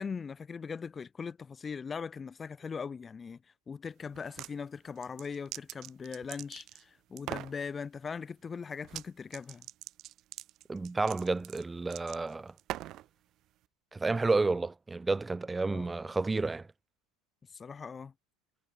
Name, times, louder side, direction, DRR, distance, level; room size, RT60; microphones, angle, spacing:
voice 1, 0.0-3.4 3.7-9.7 15.7-15.9 17.5-18.1, left 5 dB, 15° left, 3.9 m, -40 dB
sound 1, 4.1-4.5 5.0-6.8 7.2-7.6 8.8-9.1 9.3-13.1, right 15 dB, 30° right, 2.1 m, -42 dB
voice 2, 10.7-12.5 13.9-16.7, right 3 dB, 5° right, 3.9 m, -30 dB
supercardioid pair, 175°, 0 cm